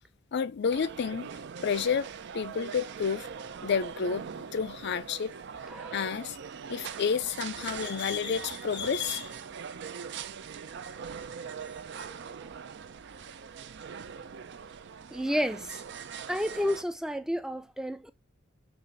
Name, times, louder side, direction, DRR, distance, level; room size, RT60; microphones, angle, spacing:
voice 1, 0.3-1.3 1.6-2.1 2.3-3.3 3.6-5.3 5.9-6.4 6.7-9.3, left 6 dB, 55° left, 0.5 m, -30 dB
sound 1, 0.7-16.8, right 6 dB, 60° right, 0.5 m, -41 dB
voice 2, 5.7-6.0 12.0-12.5 15.1-15.8 16.3-18.1, equal, 5° right, 0.4 m, -32 dB
6.8 x 2.5 x 5.5 m
head